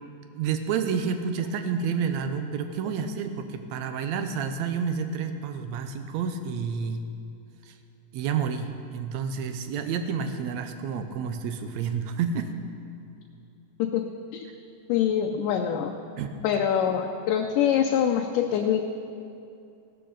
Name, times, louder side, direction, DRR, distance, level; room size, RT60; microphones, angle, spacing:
voice 1, 0.4-7.1 7.7-7.8 8.1-12.5 16.2-16.4, right 6 dB, 75° right, 7 dB, 1.7 m, -29 dB
voice 2, 14.9-15.9 16.4-18.8, left 9 dB, 85° left, 2 dB, 2.3 m, -24 dB
17.0 x 12.5 x 4.0 m, 2.6 s
omnidirectional pair, 3.7 m